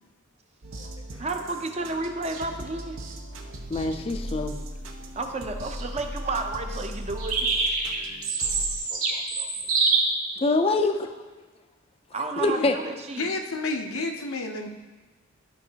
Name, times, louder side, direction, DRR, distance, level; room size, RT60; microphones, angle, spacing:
sound 1, 0.6-8.8, equal, 70° right, 0.8 m, -38 dB
voice 1, 1.2-3.0 5.1-7.4 12.1-13.3, right 3 dB, 30° right, 5 dB, 0.6 m, -31 dB
voice 2, 3.7-4.5 8.9-9.5 10.4-11.1 12.4-12.7, left 3 dB, 25° left, 6 dB, 0.4 m, -25 dB
sound 2, 7.2-10.0, right 4 dB, 90° right, 2.2 m, -25 dB
voice 3, 13.2-14.7, left 3 dB, 80° left, 4 dB, 0.7 m, -30 dB
12.5 x 5.3 x 2.8 m, 1.3 s
head